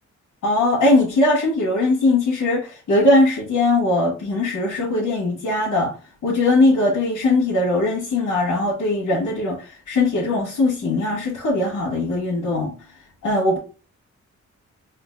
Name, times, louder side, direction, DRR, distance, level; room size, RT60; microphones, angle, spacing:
voice 1, 0.4-6.0 6.2-12.7 13.2-13.6, left 2 dB, 90° left, 1.3 m, -20 dB
4.5 x 2.4 x 2.5 m
cardioid pair, 85°, 30 cm